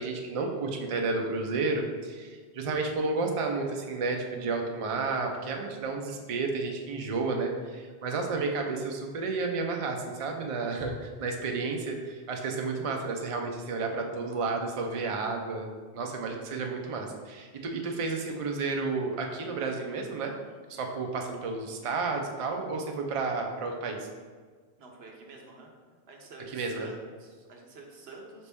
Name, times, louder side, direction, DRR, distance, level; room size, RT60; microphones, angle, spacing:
voice 1, 0.0-20.3 20.7-24.1 26.5-26.9, right 3 dB, 50° right, 2 dB, 0.4 m, -31 dB
voice 2, 24.8-25.7 26.1-28.5, right 3 dB, 70° right, 0 dB, 1.0 m, -48 dB
5.0 x 2.8 x 3.4 m, 1.5 s
omnidirectional pair, 1.1 m